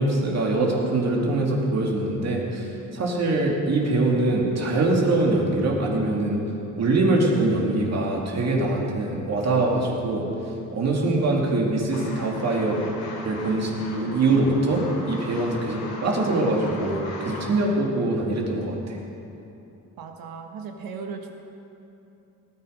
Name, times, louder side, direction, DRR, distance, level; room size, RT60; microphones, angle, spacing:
voice 1, 0.0-6.4 6.7-10.3 10.7-12.9 13.2-19.0, right 2 dB, 50° right, -2 dB, 2.6 m, -23 dB
sound 1, 11.9-17.7, left 2 dB, 80° left, 2.9 m, -39 dB
voice 2, 20.0-21.3, right 5 dB, 80° right, 4 dB, 1.4 m, -36 dB
18.5 x 10.0 x 5.2 m, 2.9 s
cardioid pair, 115°, 34 cm